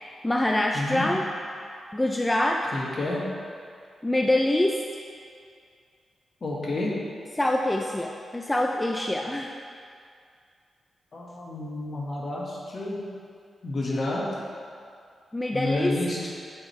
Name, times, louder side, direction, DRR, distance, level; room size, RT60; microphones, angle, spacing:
voice 1, 0.0-1.2 1.9-2.6 4.0-4.8 7.4-9.5 15.3-15.9, left 1 dB, 15° left, 2 dB, 0.3 m, -25 dB
voice 2, 0.7-1.1 2.7-3.2 6.4-6.9 11.1-13.0 13.6-14.2 15.5-16.2, left 2 dB, 50° left, -4 dB, 1.5 m, -30 dB
8.6 x 4.6 x 3.2 m, 2.3 s
cardioid pair, 75°, 0 cm